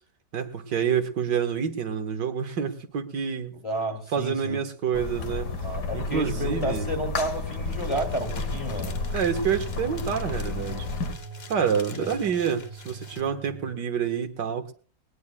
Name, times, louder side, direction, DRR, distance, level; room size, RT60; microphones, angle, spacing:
voice 1, 0.3-3.5 4.1-5.5 5.9-6.9 9.1-10.9 11.5-14.7, right 7 dB, 80° right, 8 dB, 2.1 m, -27 dB
voice 2, 3.6-4.6 5.6-9.0 11.9-12.1, right 1 dB, 20° left, 4 dB, 2.3 m, -31 dB
sound 1, 4.9-11.2, left 4 dB, 75° left, 2.0 m, -32 dB
sound 2, 7.4-13.2, left 4 dB, 40° left, 1.3 m, -44 dB
sound 3, 7.8-13.7, right 7 dB, 45° right, 1.1 m, -42 dB
20.0 x 20.0 x 2.3 m, 0.40 s
omnidirectional pair, 1.8 m